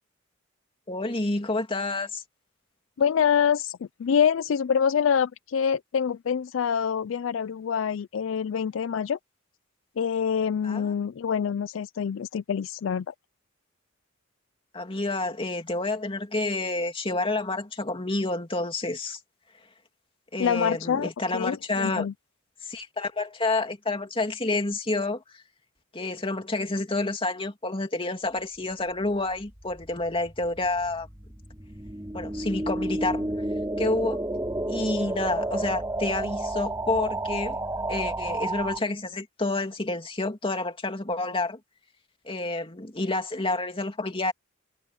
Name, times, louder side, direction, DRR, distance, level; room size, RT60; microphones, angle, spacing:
voice 1, 0.9-2.2 10.6-10.9 14.7-19.2 20.3-22.1 22.6-25.2 25.9-31.1 32.1-33.2 33.8-34.2 34.7-37.6 37.9-41.6 42.2-44.3, left 2 dB, 25° left, 2.7 m, -29 dB
voice 2, 3.0-9.2 10.0-13.1 20.4-22.1, left 7 dB, 70° left, 0.4 m, -26 dB
sound 1, 29.5-38.8, right 2 dB, 15° right, 3.2 m, -31 dB
head